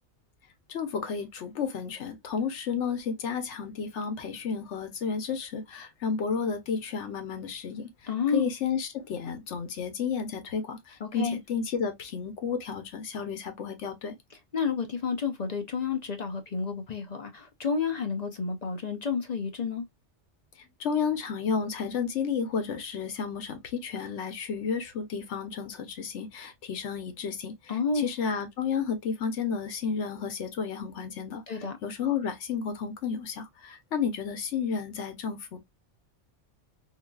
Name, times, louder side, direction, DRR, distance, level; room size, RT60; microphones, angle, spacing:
voice 1, 0.7-7.9 8.3-14.1 20.8-31.4 31.8-35.6, left 6 dB, 65° left, 1.1 m, -32 dB
voice 2, 8.1-8.5 11.0-11.4 14.5-19.8 27.7-28.1 31.5-31.8, left 5 dB, 45° left, 0.5 m, -30 dB
4.0 x 2.8 x 2.2 m
omnidirectional pair, 1.3 m